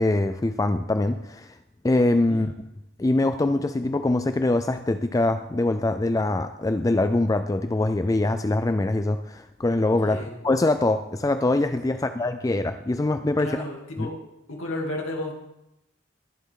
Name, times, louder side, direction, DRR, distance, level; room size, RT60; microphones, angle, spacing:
voice 1, 0.0-1.5 1.8-2.5 3.0-13.5 14.0-14.1, left 2 dB, 15° left, 9 dB, 0.3 m, -23 dB
voice 2, 13.4-14.1 14.5-15.3, left 1 dB, 80° left, 0 dB, 2.7 m, -33 dB
21.5 x 7.4 x 3.7 m, 0.87 s
head